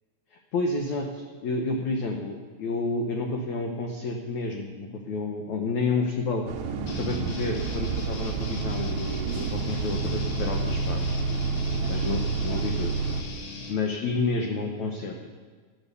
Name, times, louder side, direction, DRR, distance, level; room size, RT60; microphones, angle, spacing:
voice 1, 0.3-6.5 7.0-11.0 11.9-12.9 13.7-15.3, left 3 dB, 80° left, 2 dB, 1.6 m, -30 dB
Bus, 6.5-13.2, right 4 dB, 85° right, 1.6 m, -29 dB
sound 1, 6.9-13.7, left 3 dB, 65° left, 3.6 m, -40 dB
13.5 x 10.5 x 6.9 m, 1.5 s
omnidirectional pair, 4.9 m